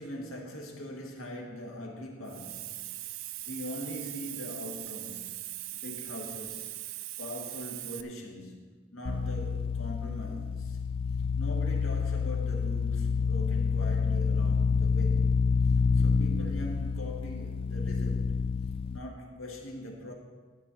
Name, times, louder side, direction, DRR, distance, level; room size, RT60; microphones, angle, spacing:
voice 1, 0.0-3.1 3.4-6.8 7.2-10.8 11.4-15.5 15.9-18.3 18.9-20.1, equal, 80° left, 1.9 m, -42 dB
Hiss, 2.3-8.0, right 15 dB, 90° right, 0.5 m, -40 dB
sound 1, 9.1-19.0, left 5 dB, 25° left, 0.3 m, -28 dB
12.5 x 4.3 x 8.2 m
head